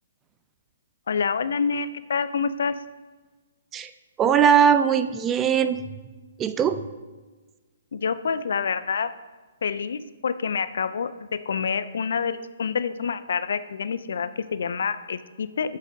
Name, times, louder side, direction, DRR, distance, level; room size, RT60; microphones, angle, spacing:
voice 1, 1.1-2.7 7.9-9.1 9.6-15.8, left 6 dB, 65° left, 13 dB, 0.4 m, -27 dB
voice 2, 4.2-5.8 6.4-6.8, right 8 dB, 20° right, 11 dB, 0.4 m, -20 dB
12.0 x 6.4 x 2.7 m, 1.3 s
hypercardioid pair, 130°, 0 cm